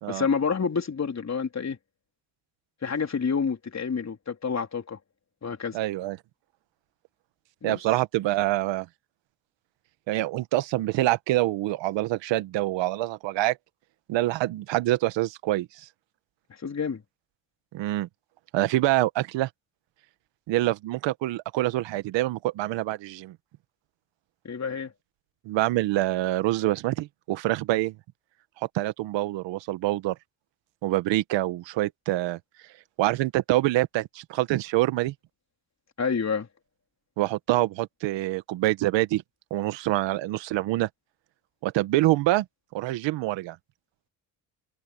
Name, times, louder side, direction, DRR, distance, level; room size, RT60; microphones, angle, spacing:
voice 1, 0.1-1.8 2.8-5.0 5.4-5.8 7.6-7.8 16.6-17.0 24.4-24.9 36.0-36.5, left 5 dB, 35° left, 3.7 m, -28 dB
voice 2, 5.7-6.2 7.6-8.9 10.1-13.6 14.1-15.9 17.7-18.1 18.5-19.5 20.5-23.4 25.4-27.9 28.7-30.1 30.8-32.4 33.0-35.1 37.2-39.2 39.5-40.9 41.6-42.4 42.7-43.6, right 16 dB, 80° right, 1.5 m, -26 dB
supercardioid pair, 65°, 44 cm